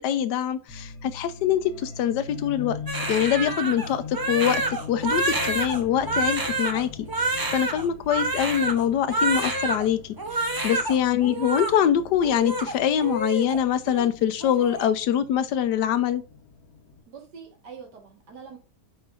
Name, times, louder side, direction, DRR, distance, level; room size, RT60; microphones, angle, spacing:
voice 1, 0.0-2.8 3.1-6.9 7.2-16.2, left 9 dB, 85° left, 1.3 m, -24 dB
sound 1, 0.7-17.0, left 4 dB, 65° left, 1.4 m, -41 dB
Crying sobbing, 2.9-9.9 10.2-11.0 11.2-11.7 12.2-13.6 13.9-14.1 14.4-14.9, right 2 dB, 25° right, 0.4 m, -28 dB
voice 2, 10.7-11.0 17.1-18.6, right 6 dB, 80° right, 2.1 m, -44 dB
8.1 x 5.1 x 2.5 m
omnidirectional pair, 1.8 m